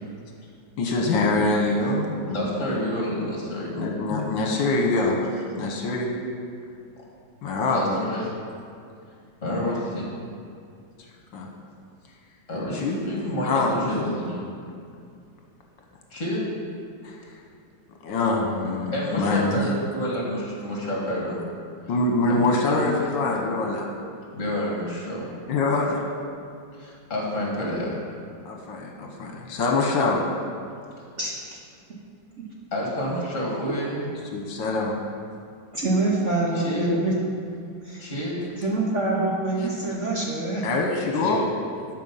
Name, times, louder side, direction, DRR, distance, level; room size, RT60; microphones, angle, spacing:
voice 1, 0.8-2.2 3.7-5.2 5.6-6.1 7.4-7.9 11.3-11.5 12.8-13.0 13.4-14.1 17.0-17.1 18.0-19.6 21.9-23.9 25.5-26.0 28.4-30.2 34.3-35.0 40.6-41.4, left 3 dB, 75° left, 0 dB, 1.7 m, -24 dB
voice 2, 2.2-3.7 7.7-8.3 9.4-10.1 12.5-14.4 16.1-16.5 18.9-21.4 22.3-22.8 24.3-25.3 26.8-28.0 32.7-34.0 36.5-36.9 38.0-38.5 41.1-41.5, equal, 40° left, -4 dB, 2.4 m, -29 dB
voice 3, 31.2-31.6 35.7-37.1 37.8-38.0 38.6-40.6, right 2 dB, 45° right, -3 dB, 1.1 m, -25 dB
12.5 x 5.1 x 5.6 m, 2.4 s
omnidirectional pair, 2.1 m